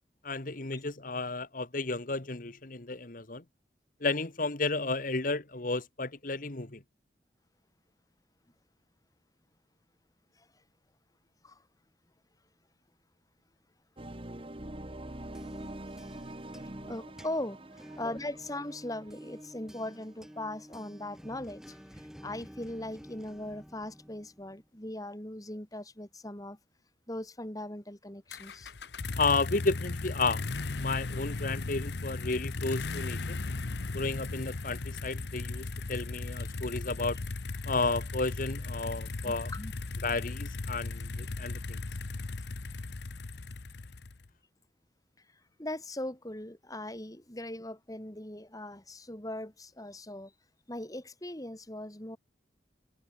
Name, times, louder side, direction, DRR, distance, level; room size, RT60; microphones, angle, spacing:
voice 1, 0.2-3.4 4.0-6.8 29.2-30.4 30.7-33.4 33.9-37.2 37.7-39.5 40.0-41.8, left 3 dB, 50° left, 1.6 m, -32 dB
sound 1, 14.0-20.8, right 1 dB, 30° right, 1.6 m, -45 dB
sound 2, 15.3-24.7, equal, 5° right, 2.4 m, -51 dB
voice 2, 16.9-26.6 27.1-28.7 39.2-39.8 45.6-50.3 50.7-52.2, left 1 dB, 20° left, 2.8 m, -40 dB
sound 3, 28.3-44.3, left 3 dB, 70° left, 0.9 m, -37 dB
head